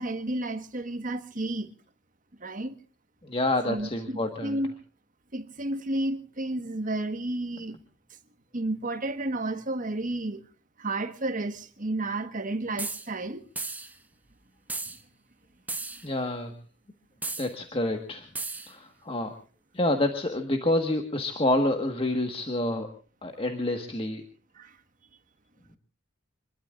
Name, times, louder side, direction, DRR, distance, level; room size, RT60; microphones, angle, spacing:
voice 1, 0.0-1.7 2.4-2.7 3.7-4.7 5.3-7.8 8.5-10.4 10.8-13.4 24.5-24.8, right 2 dB, 40° right, 1.5 m, -31 dB
voice 2, 3.2-4.7 16.0-16.5 17.4-18.3 18.7-19.3 19.7-22.9 23.2-24.2, left 1 dB, 25° left, 1.5 m, -28 dB
sound 1, 12.8-13.1 13.6-13.9 14.7-15.0 15.7-16.1 17.2-17.5 18.3-18.7, right 3 dB, 10° right, 1.0 m, -34 dB
26.5 x 21.5 x 2.5 m
head